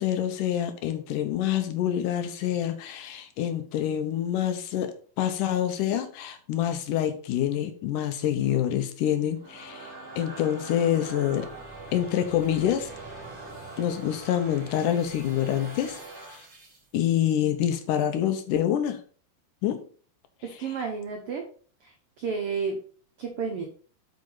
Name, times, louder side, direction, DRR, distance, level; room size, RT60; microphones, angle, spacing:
voice 1, 0.0-11.5 11.9-12.9 13.8-16.0 16.9-19.0 19.6-19.8, left 10 dB, 75° left, 9 dB, 2.3 m, -26 dB
sound 1, 9.2-16.9, right 2 dB, 25° right, 3.3 m, -43 dB
voice 2, 20.6-21.4 21.8-22.8 23.2-23.6, right 5 dB, 80° right, 3 dB, 1.3 m, -31 dB
8.6 x 4.8 x 3.9 m, 0.43 s
omnidirectional pair, 4.0 m